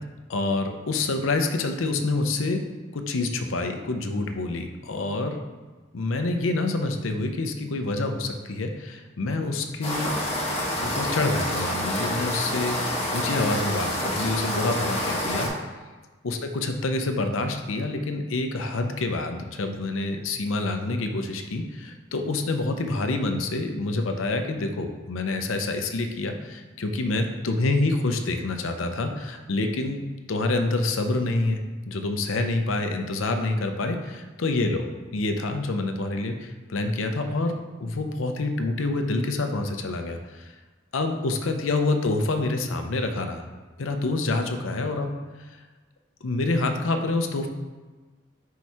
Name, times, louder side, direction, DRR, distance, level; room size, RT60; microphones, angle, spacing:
voice 1, 0.3-2.6 2.9-5.4 5.9-10.1 10.8-15.5 16.2-30.0 30.3-31.6 31.9-34.8 35.1-37.5 37.8-40.5 40.9-43.4 43.8-45.1 46.2-47.5, left 2 dB, 85° left, 6 dB, 0.6 m, -27 dB
sound 1, 9.8-15.5, left 1 dB, 30° left, 1.1 m, -28 dB
4.7 x 4.3 x 4.6 m, 1.3 s
head